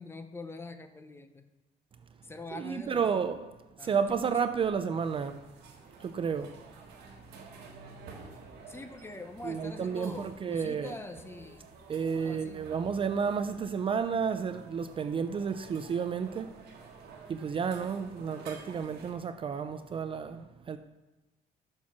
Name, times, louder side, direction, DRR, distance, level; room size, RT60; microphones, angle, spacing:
voice 1, 0.0-1.4 2.2-3.3 3.8-4.5 8.7-11.7 12.0-12.7, left 2 dB, 15° left, 0.6 m, -44 dB
voice 2, 2.5-3.4 3.8-5.4 6.0-6.6 9.4-10.9 11.9-16.5 17.3-20.8, right 6 dB, 35° right, 0.4 m, -31 dB
sound 1, 5.0-19.1, right 4 dB, 85° right, 1.4 m, -51 dB
7.2 x 4.5 x 6.0 m
cardioid pair, 130°, 16 cm